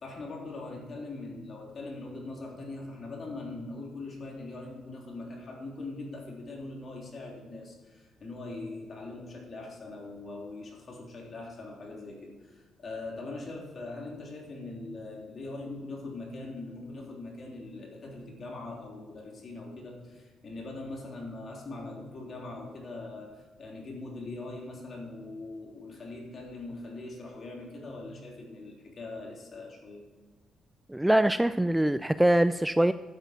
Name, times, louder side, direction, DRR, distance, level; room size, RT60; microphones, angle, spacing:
voice 1, 0.0-30.1, left 2 dB, 45° left, -1 dB, 3.4 m, -41 dB
voice 2, 30.9-32.9, right 1 dB, 5° right, 12 dB, 0.4 m, -23 dB
12.0 x 8.2 x 4.6 m, 1.3 s
cardioid pair, 90°, 0 cm